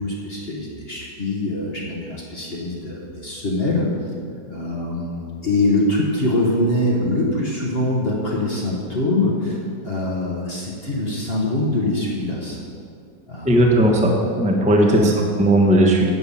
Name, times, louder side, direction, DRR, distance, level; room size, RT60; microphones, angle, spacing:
voice 1, 0.0-3.9 4.5-9.6 9.8-12.6 13.3-13.7 14.9-15.2, left 2 dB, 35° left, -3 dB, 1.4 m, -23 dB
voice 2, 13.4-16.1, right 1 dB, 5° right, 0 dB, 0.8 m, -16 dB
11.0 x 6.9 x 5.6 m, 2.3 s
omnidirectional pair, 1.9 m